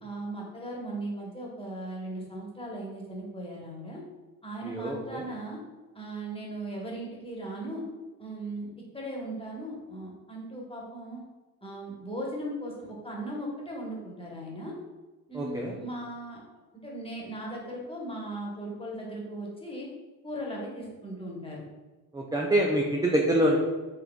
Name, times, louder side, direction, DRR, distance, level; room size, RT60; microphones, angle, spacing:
voice 1, 0.0-4.0 4.4-5.6 5.9-7.8 8.2-8.7 8.9-11.2 11.6-14.7 15.3-16.4 16.8-19.9 20.2-21.6, right 1 dB, 15° left, -3 dB, 1.3 m, -38 dB
voice 2, 4.6-5.2 15.3-15.7 22.1-23.6, right 1 dB, 10° right, -1 dB, 0.4 m, -25 dB
3.8 x 3.1 x 2.3 m, 1.2 s
supercardioid pair, 55°, 42 cm